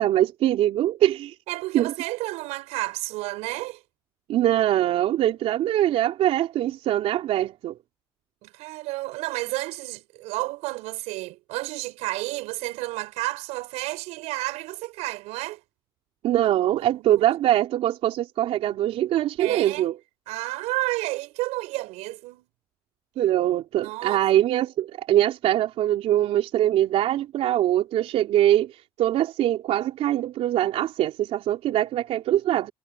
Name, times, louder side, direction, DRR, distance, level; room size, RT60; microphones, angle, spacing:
voice 1, 0.0-1.3 1.7-1.9 4.3-7.8 16.2-20.0 23.2-32.7, right 12 dB, 65° right, 3.3 m, -23 dB
voice 2, 1.5-3.8 8.4-15.6 16.9-17.1 19.4-19.9 20.3-22.5 23.8-24.3, right 20 dB, 80° right, 5.1 m, -31 dB
supercardioid pair, 90°, 11 cm